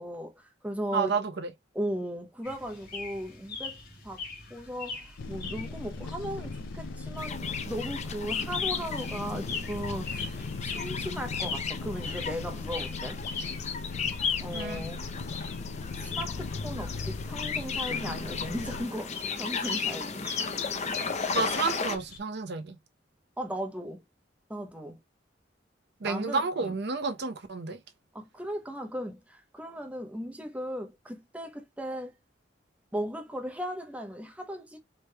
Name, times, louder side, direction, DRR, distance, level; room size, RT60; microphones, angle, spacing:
voice 1, 0.0-1.2 1.7-3.8 4.0-4.2 4.5-13.2 14.4-15.0 16.0-20.2 21.3-21.4 23.4-24.0 24.5-25.0 26.0-26.7 28.1-32.2 32.9-34.8, equal, 10° right, 0.9 m, -37 dB
voice 2, 0.9-1.5 14.5-14.8 21.3-22.8 26.0-27.8, right 4 dB, 65° right, 0.8 m, -30 dB
sound 1, 2.4-22.2, left 4 dB, 55° left, 2.0 m, -43 dB
sound 2, 5.2-18.8, left 3 dB, 90° left, 0.4 m, -38 dB
sound 3, 7.2-22.0, left 6 dB, 40° left, 0.6 m, -35 dB
4.7 x 3.1 x 2.2 m
head